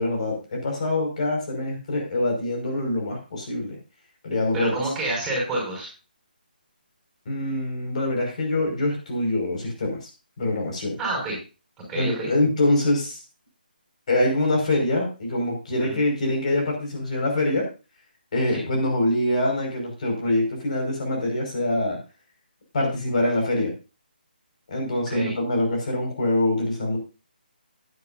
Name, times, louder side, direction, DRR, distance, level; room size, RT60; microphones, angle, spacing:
voice 1, 0.0-3.8 4.2-4.8 7.3-10.0 10.4-11.0 11.9-13.2 14.1-17.6 18.3-22.0 22.7-23.7 24.7-27.0, left 1 dB, 45° left, 1 dB, 5.5 m, -24 dB
voice 2, 4.5-5.9 11.0-11.4 11.9-12.3 15.9-16.0 18.5-18.6 25.1-25.3, right 2 dB, 10° right, -2 dB, 5.9 m, -28 dB
16.0 x 10.0 x 2.7 m, 0.31 s
figure-of-eight pair, 155°, 5 cm